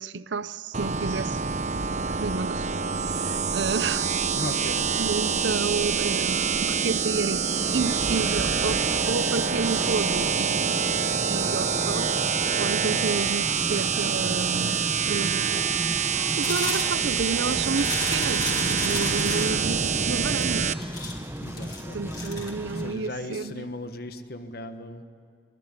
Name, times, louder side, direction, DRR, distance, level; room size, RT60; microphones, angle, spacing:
voice 1, 0.0-1.4 2.1-2.7 2.9-4.1 5.0-11.0 11.3-12.3 12.6-15.7 16.2-20.7 21.9-23.7, right 4 dB, 80° right, 0.6 m, -31 dB
sound 1, 0.7-20.7, right 6 dB, 40° right, 0.8 m, -26 dB
voice 2, 4.3-4.9 12.8-13.0 21.4-22.2 22.7-25.0, left 1 dB, 55° left, 1.5 m, -37 dB
sound 2, 7.6-22.9, equal, 15° right, 1.2 m, -35 dB
sound 3, 16.4-19.5 20.2-22.5, left 4 dB, 25° left, 3.3 m, -34 dB
23.0 x 22.0 x 9.9 m
head